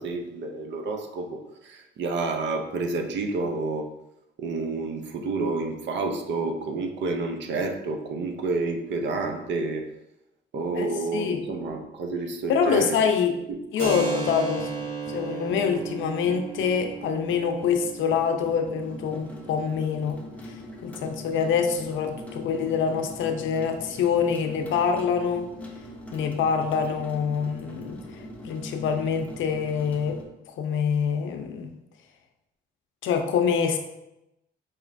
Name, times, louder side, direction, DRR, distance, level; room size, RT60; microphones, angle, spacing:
voice 1, 0.0-3.9 4.4-9.8 10.5-13.0 13.5-13.6, right 3 dB, 65° right, 4 dB, 0.6 m, -29 dB
voice 2, 12.5-13.3 13.7-14.7 15.1-20.2 20.4-25.5 26.1-28.0 28.4-30.2 30.6-31.7 33.0-33.8, left 6 dB, 75° left, 5 dB, 0.5 m, -25 dB
Keyboard (musical), 13.8-21.2, right 4 dB, 90° right, 1.0 m, -36 dB
sound 1, 14.3-30.2, left 1 dB, 5° left, 0.7 m, -43 dB
4.3 x 3.0 x 2.5 m, 0.91 s
cardioid pair, 90°, 20 cm